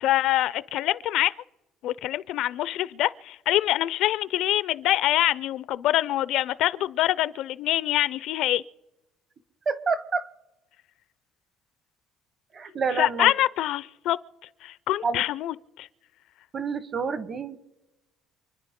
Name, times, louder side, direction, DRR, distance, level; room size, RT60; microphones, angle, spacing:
voice 1, 0.0-1.3 1.8-8.6 12.9-14.2 14.6-15.9, left 14 dB, 70° left, 0.5 m, -25 dB
voice 2, 9.7-10.3 12.5-13.3 15.0-15.2 16.5-17.6, right 5 dB, 35° right, 1.1 m, -28 dB
28.5 x 10.5 x 3.7 m
cardioid pair, 145°, 0 cm